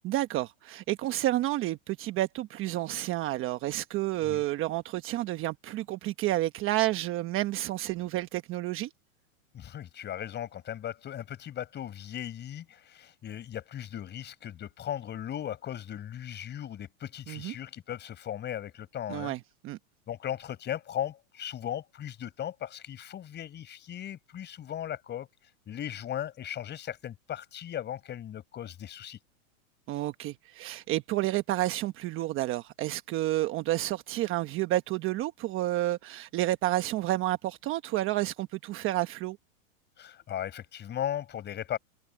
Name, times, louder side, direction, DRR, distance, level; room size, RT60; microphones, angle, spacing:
voice 1, 0.0-8.9 17.3-17.5 19.1-19.4 19.6-19.8 29.9-39.4, right 16 dB, 30° right, 1.1 m, -30 dB
voice 2, 9.5-19.3 20.1-25.3 25.7-29.2 40.0-41.8, left 10 dB, 25° left, 5.0 m, -37 dB
open air
supercardioid pair, 140°, 42 cm